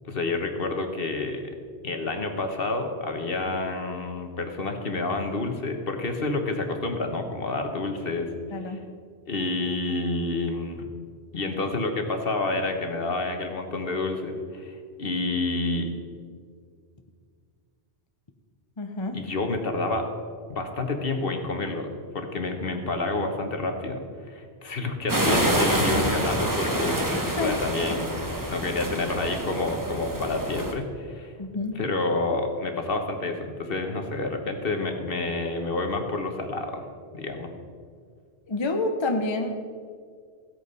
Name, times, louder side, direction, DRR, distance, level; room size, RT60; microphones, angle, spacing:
voice 1, 0.0-1.4 1.8-8.3 8.7-8.8 9.3-10.9 11.3-15.9 19.1-20.1 20.5-21.9 22.1-31.3 31.7-36.8 37.1-37.5, left 2 dB, 55° left, 5 dB, 1.4 m, -29 dB
voice 2, 8.5-8.8 18.8-19.2 27.3-27.6 31.4-31.8 38.5-39.6, left 2 dB, 30° left, 5 dB, 0.8 m, -28 dB
sound 1, 25.1-30.7, right 1 dB, 15° right, 1.4 m, -26 dB
15.5 x 8.4 x 5.4 m, 2.1 s
omnidirectional pair, 1.1 m